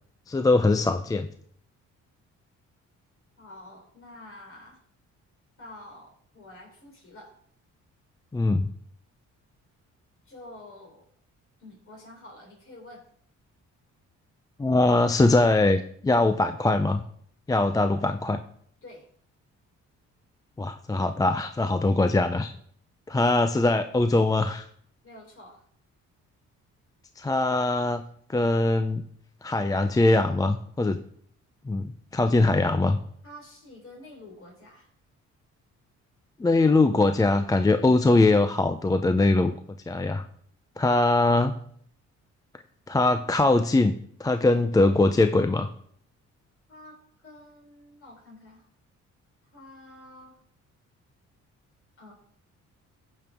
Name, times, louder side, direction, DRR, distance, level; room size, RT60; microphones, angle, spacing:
voice 1, 0.3-1.3 8.3-8.7 14.6-17.0 17.5-18.4 20.6-22.5 23.1-24.7 27.2-28.0 28.3-29.0 29.4-31.0 31.7-33.0 36.4-39.5 39.9-40.2 40.8-41.6 42.9-43.9 44.2-45.7, left 2 dB, 10° left, 8 dB, 0.4 m, -22 dB
voice 2, 3.4-4.8 5.6-7.4 10.3-11.1 11.6-13.1 18.8-19.1 25.0-25.6 33.2-34.9 46.7-48.7 49.5-50.4 52.0-52.1, left 1 dB, 45° left, 0 dB, 3.8 m, -48 dB
14.5 x 5.3 x 3.5 m, 0.62 s
cardioid pair, 90°, 30 cm